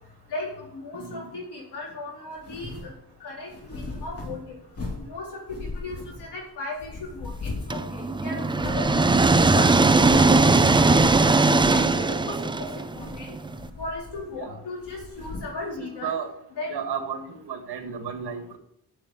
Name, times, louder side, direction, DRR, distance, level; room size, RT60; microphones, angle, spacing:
voice 1, 0.3-2.9 3.2-4.6 5.0-5.4 5.7-9.1 9.5-13.3 13.8-16.1 16.6-16.7, left 2 dB, 75° left, -3 dB, 4.5 m, -36 dB
voice 2, 0.9-1.3 14.3-14.6 15.8-16.3 16.7-18.6, right 7 dB, 75° right, 5 dB, 2.1 m, -33 dB
sound 1, 2.4-2.9 3.5-5.1 5.5-6.4 6.8-8.1 8.4-9.5 10.0-10.3 10.8-10.9 11.4-12.0 12.8-13.3 13.5-14.4 14.8-15.6, left 3 dB, 35° left, 2.7 m, -37 dB
sound 2, 7.7-13.6, right 3 dB, 15° right, 0.3 m, -20 dB
7.7 x 7.3 x 8.1 m, 0.75 s
wide cardioid pair, 145°, 40 cm